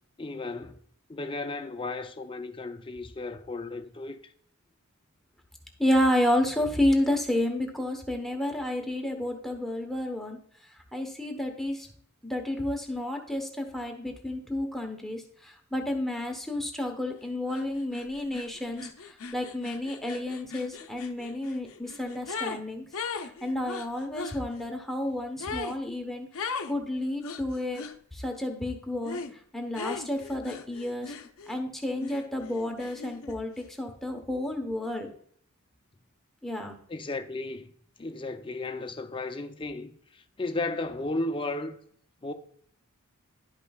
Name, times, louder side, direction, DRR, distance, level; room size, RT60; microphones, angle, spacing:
voice 1, 0.2-0.8 1.1-4.2 36.9-37.7 38.0-41.8 42.2-42.3, left 2 dB, 25° left, 0.5 m, -34 dB
voice 2, 5.8-10.4 10.9-11.9 12.2-18.9 19.3-22.8 23.4-26.3 26.7-27.8 28.1-29.2 29.5-31.1 31.5-35.1 36.4-36.8, left 1 dB, ahead, 1.0 m, -30 dB
sound 1, 17.5-17.6 17.9-22.6 22.9-24.4 25.4-25.8 26.3-26.7 27.2-28.0 29.0-29.3 29.7-31.6 32.0-33.4, left 4 dB, 70° left, 0.6 m, -38 dB
11.5 x 5.2 x 2.3 m
head